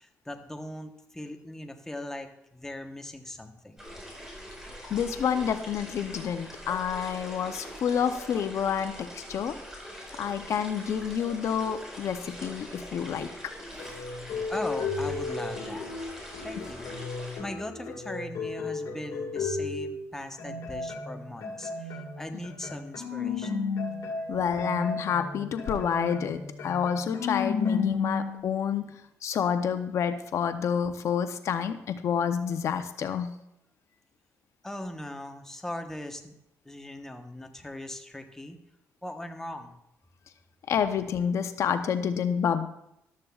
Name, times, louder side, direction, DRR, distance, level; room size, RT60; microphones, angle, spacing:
voice 1, 0.0-3.8 14.5-15.9 16.4-16.9 17.4-23.7 27.7-27.8 34.6-36.3 36.6-38.6 39.0-39.8, left 1 dB, 10° left, 4 dB, 1.1 m, -39 dB
sound 1, 3.8-17.4, equal, 10° right, 4.8 m, -43 dB
voice 2, 4.9-9.6 10.2-13.3 24.3-33.4 40.7-42.7, left 7 dB, 65° left, 9 dB, 0.7 m, -29 dB
sound 2, 13.8-20.0 20.4-28.4, left 4 dB, 85° left, 1.9 m, -33 dB
14.0 x 12.0 x 2.4 m, 0.82 s
cardioid pair, 110°, 5 cm